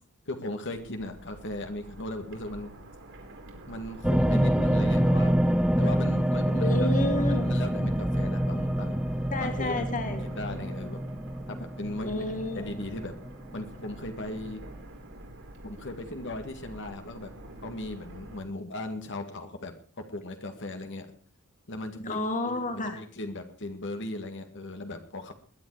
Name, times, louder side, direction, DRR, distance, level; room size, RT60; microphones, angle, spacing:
voice 1, 0.3-2.7 3.7-6.7 7.2-9.0 9.4-11.0 11.5-12.2 12.5-13.1 13.5-14.6 15.6-17.3 17.6-21.1 21.7-22.2 22.7-25.3, left 1 dB, 55° left, 5 dB, 2.1 m, -37 dB
sound 1, 0.7-18.4, right 1 dB, 60° right, 4.4 m, -46 dB
sound 2, 4.0-13.3 13.9-14.0, equal, 5° right, 0.7 m, -26 dB
voice 2, 6.6-7.5 9.3-10.3 12.0-12.7 22.0-23.0, left 2 dB, 35° left, 6 dB, 2.0 m, -30 dB
21.0 x 10.5 x 4.9 m, 0.43 s
head